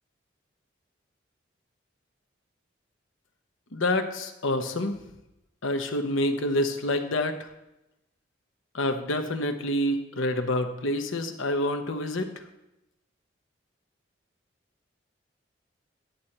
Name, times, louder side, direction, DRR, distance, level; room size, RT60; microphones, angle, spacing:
voice 1, 3.7-5.0 5.6-7.4 8.7-12.3, left 1 dB, 85° left, 6 dB, 0.9 m, -27 dB
10.5 x 4.3 x 7.8 m, 0.91 s
head